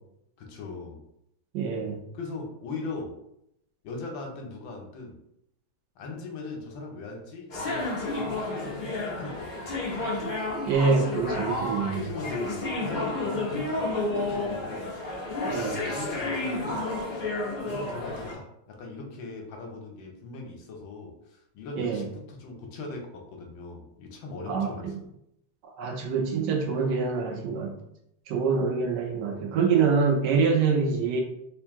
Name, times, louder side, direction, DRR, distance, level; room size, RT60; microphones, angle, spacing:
voice 1, 0.4-1.0 2.1-3.2 3.8-5.2 6.0-7.9 8.1-9.7 11.4-11.6 11.9-14.9 15.9-16.9 17.6-25.0, left 3 dB, 70° left, 2 dB, 1.4 m, -40 dB
voice 2, 1.5-2.0 10.6-12.0 15.4-15.8 21.8-22.0 24.5-24.9 25.8-27.7 28.3-31.2, right 5 dB, 70° right, 2 dB, 1.1 m, -25 dB
sound 1, 7.5-18.3, left 2 dB, 55° left, 0.5 m, -31 dB
3.5 x 2.6 x 3.5 m, 0.78 s
omnidirectional pair, 2.2 m